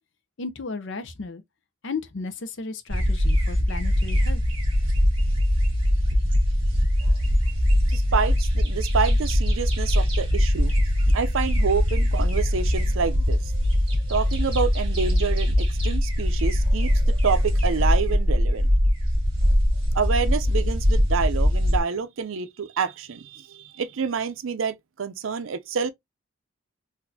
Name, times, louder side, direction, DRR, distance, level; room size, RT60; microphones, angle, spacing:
voice 1, 0.4-1.4 1.8-4.4, left 4 dB, 60° left, 0.6 m, -34 dB
sound 1, 2.9-21.8, equal, 25° right, 1.3 m, -22 dB
voice 2, 7.9-10.7 11.1-13.6 14.1-18.7 19.9-25.9, right 5 dB, 75° right, 0.5 m, -28 dB
3.9 x 2.5 x 2.7 m
head